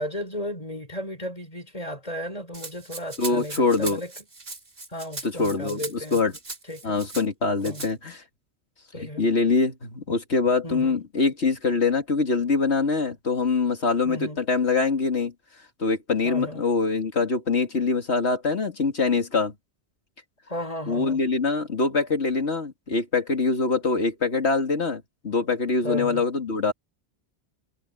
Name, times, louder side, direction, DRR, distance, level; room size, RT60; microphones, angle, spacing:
voice 1, 0.0-4.1 4.9-6.2 6.7-7.0 7.7-7.9 8.9-9.2 10.6-10.9 14.0-14.4 16.2-16.6 20.5-21.2 25.8-26.2, equal, 35° left, 5.2 m, -34 dB
Rattle (instrument), 2.5-7.2 7.6-7.9, right 3 dB, 55° right, 2.3 m, -38 dB
voice 2, 3.2-4.0 5.2-6.3 6.8-8.2 9.2-15.3 15.8-19.5 20.9-26.7, left 4 dB, 75° left, 2.7 m, -24 dB
omnidirectional pair, 1.1 m